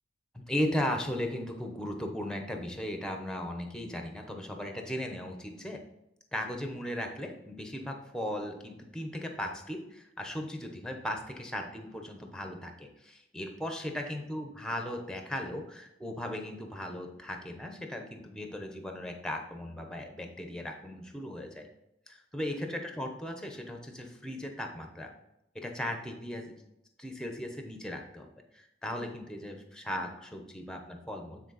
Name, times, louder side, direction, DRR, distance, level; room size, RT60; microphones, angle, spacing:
voice 1, 0.3-5.8 6.3-21.7 22.1-25.1 25.5-26.6 27.0-28.3 28.5-31.4, left 1 dB, 5° left, 4 dB, 0.8 m, -37 dB
9.1 x 4.3 x 4.0 m, 0.86 s
head